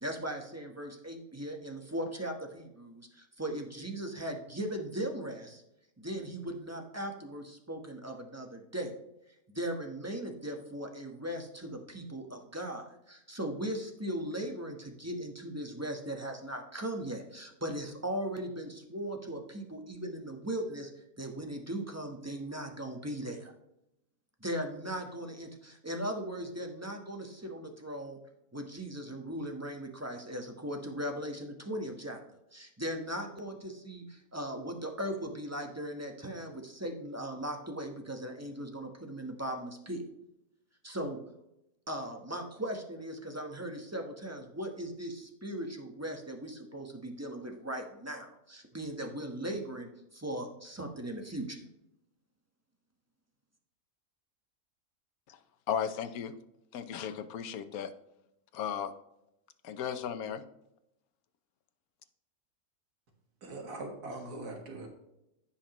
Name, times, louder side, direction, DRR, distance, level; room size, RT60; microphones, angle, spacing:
voice 1, 0.0-5.6 6.0-8.9 9.5-20.9 21.2-23.5 24.4-28.2 28.5-32.2 32.5-40.0 40.8-41.2 41.9-51.6, right 1 dB, 10° right, 1.0 m, -38 dB
voice 2, 55.7-56.3 56.7-57.9 58.5-58.9 59.6-60.4, left 8 dB, 75° left, 1.2 m, -35 dB
voice 3, 63.4-64.9, right 2 dB, 90° right, 2.2 m, -41 dB
15.0 x 5.8 x 3.0 m
omnidirectional pair, 1.6 m